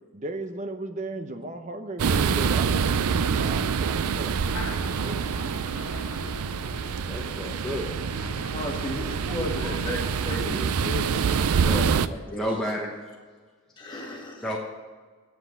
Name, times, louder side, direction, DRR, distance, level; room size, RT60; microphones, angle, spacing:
voice 1, 0.1-5.6, right 2 dB, 35° right, 8 dB, 0.7 m, -37 dB
sound 1, 2.0-12.1, right 6 dB, 85° right, 0.4 m, -26 dB
sound 2, 4.4-10.6, left 3 dB, 65° left, 0.9 m, -42 dB
voice 2, 7.1-7.9 12.3-12.9 13.9-14.0 14.4-14.6, equal, 5° left, -4 dB, 1.0 m, -31 dB
voice 3, 8.4-12.7 13.8-14.5, left 1 dB, 20° left, -2 dB, 2.0 m, -35 dB
7.9 x 7.8 x 8.6 m, 1.4 s
head